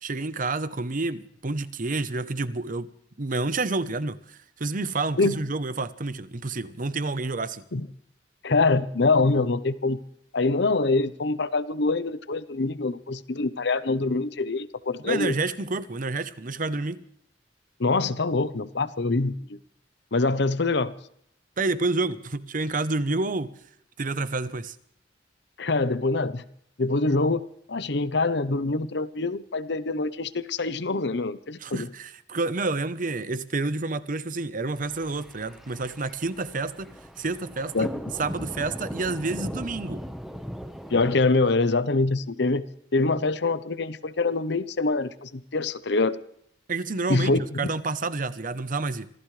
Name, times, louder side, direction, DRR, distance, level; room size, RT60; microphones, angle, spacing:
voice 1, 0.0-2.9 3.2-7.6 15.0-17.0 21.6-23.5 24.0-24.8 31.6-36.9 37.2-37.9 38.2-40.0 46.7-47.3 47.6-49.1, right 3 dB, 45° right, 14 dB, 0.9 m, -29 dB
voice 2, 8.4-10.0 10.3-15.3 17.8-19.6 20.1-20.9 25.6-26.5 26.8-31.9 37.7-37.9 40.9-42.7 42.9-46.2 47.1-47.7, left 3 dB, 65° left, 14 dB, 0.9 m, -25 dB
sound 1, 34.8-41.2, equal, ahead, 1.2 m, -38 dB
26.0 x 15.0 x 3.3 m, 0.68 s
head